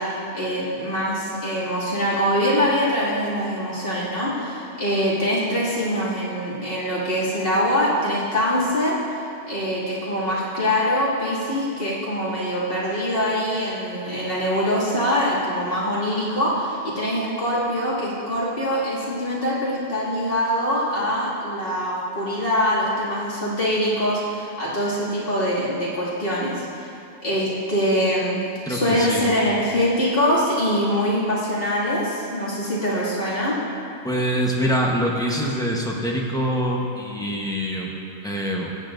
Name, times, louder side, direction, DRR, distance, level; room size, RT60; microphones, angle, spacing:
voice 1, 0.0-9.0 9.5-26.9 27.2-28.4 28.7-33.6, equal, 55° left, -9 dB, 2.6 m, -23 dB
voice 2, 28.7-29.3 34.0-37.9 38.2-38.7, equal, 5° left, -3 dB, 0.9 m, -24 dB
15.0 x 8.6 x 2.6 m, 2.6 s
omnidirectional pair, 1.1 m